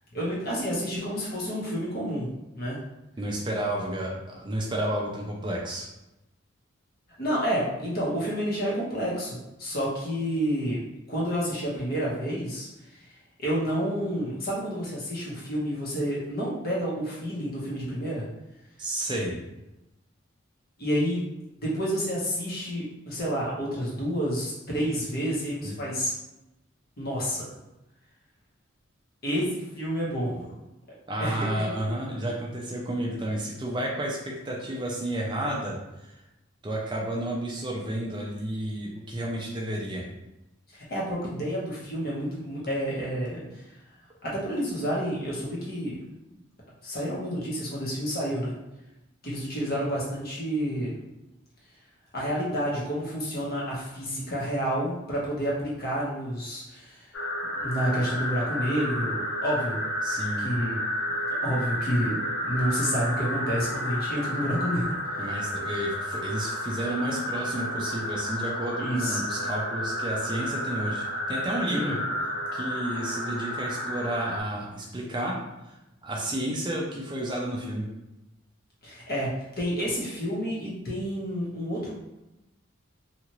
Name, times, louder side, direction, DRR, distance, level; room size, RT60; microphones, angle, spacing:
voice 1, 0.1-2.8 7.2-10.8 11.1-12.7 13.4-18.2 20.8-21.3 21.6-26.1 27.0-27.5 29.2-30.5 31.2-31.6 40.7-43.5 44.2-46.0 46.8-48.5 49.2-51.0 52.1-57.1 57.6-59.8 60.4-60.8 61.4-65.3 68.8-69.2 71.7-72.0 78.8-81.9, equal, 50° left, -5 dB, 1.0 m, -29 dB
voice 2, 3.2-5.9 18.8-19.4 25.6-25.8 31.1-36.2 36.6-40.1 60.0-60.5 65.2-72.0 72.5-75.4 75.6-75.8 76.0-77.9, right 1 dB, 25° right, -2 dB, 0.4 m, -31 dB
sound 1, 57.1-74.4, equal, 70° left, 0.6 m, -31 dB
2.8 x 2.5 x 2.9 m, 0.94 s
head